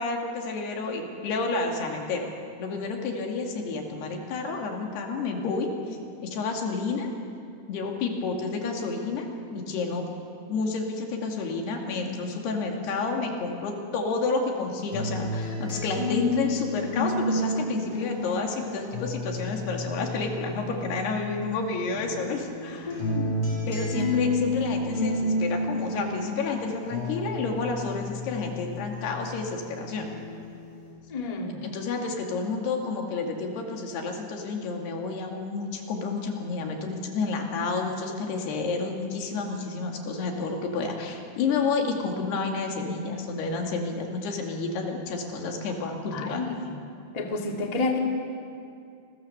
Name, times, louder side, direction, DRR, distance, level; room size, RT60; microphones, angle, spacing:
voice 1, 0.0-2.3 2.6-5.7 6.2-7.1 7.7-9.3 9.5-10.1 10.5-23.0 23.7-30.1 31.6-46.4, left 4 dB, 85° left, 2 dB, 4.4 m, -30 dB
sound 1, 14.9-21.6 21.9-29.6 30.0-30.9, left 2 dB, 35° left, 7.5 m, -31 dB
voice 2, 22.9-23.3 24.0-24.1 31.1-31.6 46.1-46.6 47.1-48.0, left 3 dB, 15° left, 1 dB, 1.3 m, -30 dB
28.5 x 21.5 x 7.0 m, 2.5 s
omnidirectional pair, 4.6 m